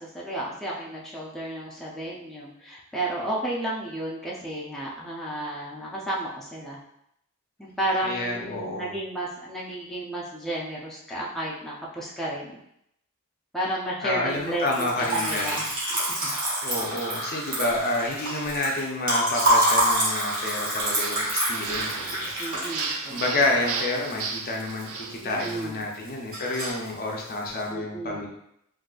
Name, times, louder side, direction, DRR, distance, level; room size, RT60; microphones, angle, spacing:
voice 1, 0.0-6.8 7.6-12.6 13.5-15.6 15.9-16.3 22.4-23.1 25.2-25.8 27.7-28.3, right 1 dB, ahead, -6 dB, 0.5 m, -32 dB
voice 2, 8.0-8.9 14.0-15.6 16.6-22.3 22.6-22.8 23.1-28.3, left 2 dB, 45° left, -1 dB, 0.6 m, -29 dB
Liquid, 14.6-24.8 25.1-25.8 26.1-26.9, right 1 dB, 40° right, 1.3 m, -27 dB
sound 1, 20.8-25.7, right 5 dB, 75° right, 0.4 m, -35 dB
3.7 x 2.6 x 2.3 m, 0.76 s
head